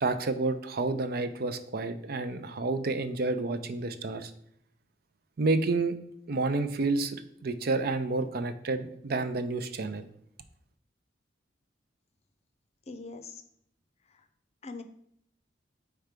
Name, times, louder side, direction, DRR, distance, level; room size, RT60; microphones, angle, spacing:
voice 1, 0.0-4.3 5.4-5.9 6.3-10.1, right 3 dB, 55° right, 10 dB, 0.5 m, -30 dB
voice 2, 12.9-13.4 14.6-14.8, left 3 dB, 35° left, 8 dB, 0.6 m, -41 dB
4.6 x 4.5 x 5.1 m, 0.70 s
head